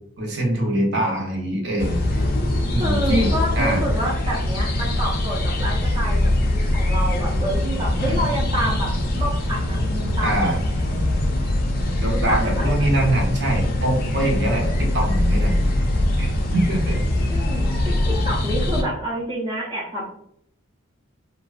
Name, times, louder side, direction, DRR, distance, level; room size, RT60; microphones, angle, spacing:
voice 1, 0.2-2.2 2.7-3.8 10.2-10.6 12.0-15.7 16.2-16.3 16.5-17.0, right 1 dB, 55° right, -1 dB, 0.6 m, -23 dB
sound 1, 1.8-18.8, left 1 dB, 45° left, 0.3 m, -22 dB
voice 2, 2.8-10.5 12.1-13.0 17.3-20.0, right 1 dB, 20° right, -6 dB, 0.4 m, -28 dB
2.5 x 2.1 x 2.3 m, 0.73 s
head